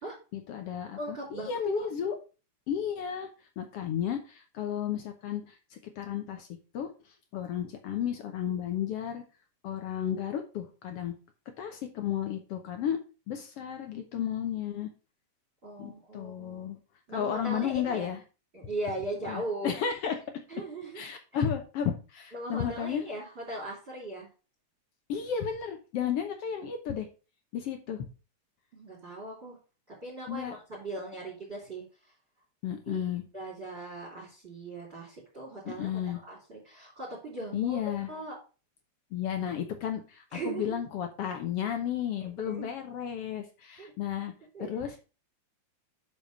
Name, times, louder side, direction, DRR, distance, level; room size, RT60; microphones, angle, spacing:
voice 1, 0.3-2.2 2.7-3.3 3.6-6.5 6.7-6.9 7.3-9.2 9.6-11.1 11.6-13.0 13.3-14.9 15.8-16.8 17.1-18.2 19.3-20.1 20.9-23.0 25.1-27.1 27.5-28.0 30.3-30.5 32.6-33.2 35.6-36.2 37.5-38.1 39.1-44.3 44.6-45.0, left 9 dB, 65° left, 6 dB, 1.7 m, -33 dB
voice 2, 1.0-1.9 15.6-16.7 17.1-18.1 18.5-19.7 20.5-21.0 22.3-24.3 28.7-29.6 29.9-31.8 32.9-33.0 33.3-37.8 38.1-38.4 40.3-40.8 42.4-42.7 43.8-43.9 44.5-44.7, right 2 dB, 20° right, -5 dB, 3.3 m, -39 dB
7.2 x 5.6 x 5.0 m, 0.33 s
omnidirectional pair, 3.4 m